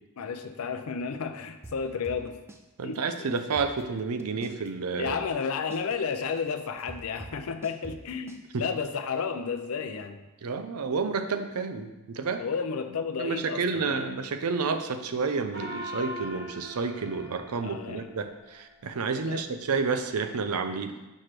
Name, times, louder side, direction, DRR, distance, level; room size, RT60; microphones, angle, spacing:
voice 1, 0.2-2.4 2.8-3.0 5.0-10.3 12.4-14.0 17.6-18.1 19.1-19.4, left 5 dB, 70° left, 8 dB, 0.5 m, -32 dB
sound 1, 1.6-2.6 2.9-3.0 3.4-4.7 5.1-8.4, right 2 dB, 10° right, 0.4 m, -45 dB
voice 2, 2.8-5.2 8.5-8.6 10.4-12.4 13.2-21.0, right 4 dB, 80° right, 8 dB, 0.5 m, -30 dB
Gong, 15.5-18.4, equal, 45° right, 0.9 m, -40 dB
6.4 x 3.3 x 5.8 m, 1.1 s
head